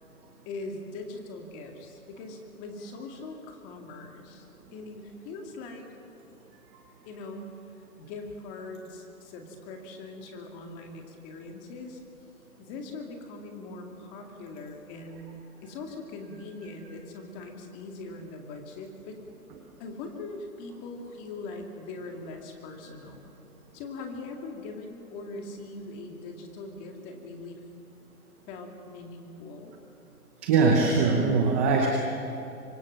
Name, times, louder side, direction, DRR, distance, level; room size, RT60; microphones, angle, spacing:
voice 1, 0.5-4.4 4.7-5.9 7.1-7.5 8.0-12.0 12.6-19.2 19.8-23.3 23.7-27.6 28.5-29.7, left 3 dB, 15° left, 3 dB, 2.2 m, -41 dB
voice 2, 30.4-31.9, right 4 dB, 10° right, 1 dB, 0.8 m, -22 dB
24.5 x 24.0 x 7.5 m, 2.9 s
hypercardioid pair, 155°, 45 cm